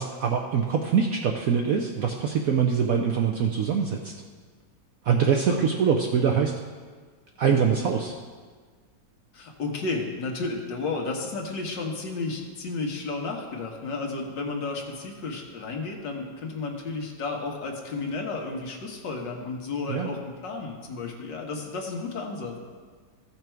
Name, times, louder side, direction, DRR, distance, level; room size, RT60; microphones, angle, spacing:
voice 1, 0.0-4.1 5.0-6.5 7.4-8.1 19.9-20.1, right 6 dB, 70° right, 2 dB, 0.8 m, -24 dB
voice 2, 9.3-22.6, left 3 dB, 70° left, 1 dB, 1.9 m, -32 dB
15.0 x 5.9 x 4.5 m, 1.5 s
omnidirectional pair, 2.1 m